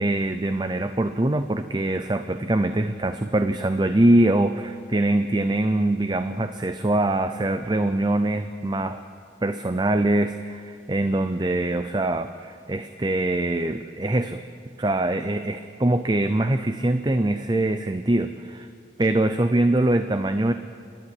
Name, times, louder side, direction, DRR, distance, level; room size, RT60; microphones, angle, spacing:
voice 1, 0.0-9.0 9.4-14.4 14.8-18.7 19.0-20.5, right 1 dB, 20° right, 9 dB, 0.5 m, -23 dB
27.5 x 11.0 x 9.9 m, 2.3 s
head